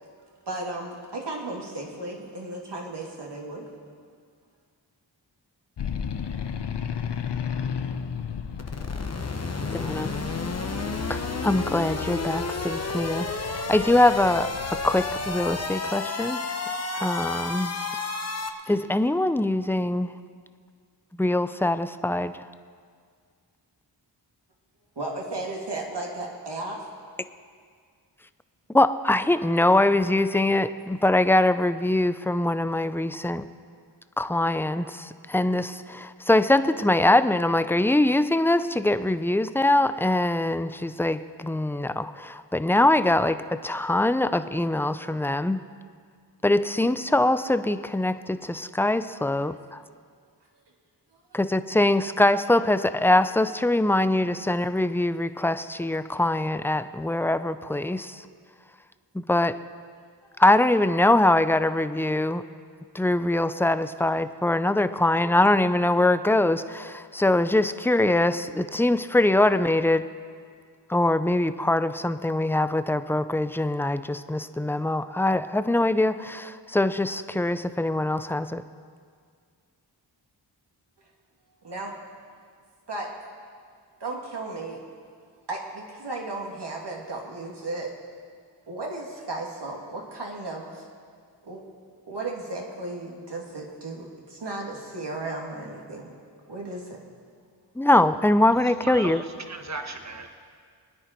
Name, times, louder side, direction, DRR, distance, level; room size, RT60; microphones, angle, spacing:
voice 1, 0.5-3.7 25.0-26.9 81.6-81.9 82.9-83.1 84.0-84.8 85.5-87.9 88.7-90.9 91.4-91.6 92.1-96.2 96.5-97.0, right 2 dB, 65° right, -1 dB, 2.5 m, -35 dB
sound 1, 5.8-15.7, left 7 dB, 65° left, 0.8 m, -34 dB
sound 2, 8.6-18.5, left 3 dB, 35° left, 1.1 m, -31 dB
voice 2, 9.7-10.1 11.1-16.4 16.9-17.8 18.7-20.1 21.2-22.5 28.7-33.4 34.2-45.6 46.4-49.8 51.3-58.3 59.1-59.6 60.4-62.4 62.9-70.1 70.9-78.6 97.8-99.2, left 1 dB, 5° left, 12 dB, 0.6 m, -23 dB
voice 3, 98.8-100.3, right 3 dB, 40° right, 5 dB, 1.4 m, -36 dB
23.0 x 10.0 x 4.5 m, 2.1 s
cardioid pair, 45°, 44 cm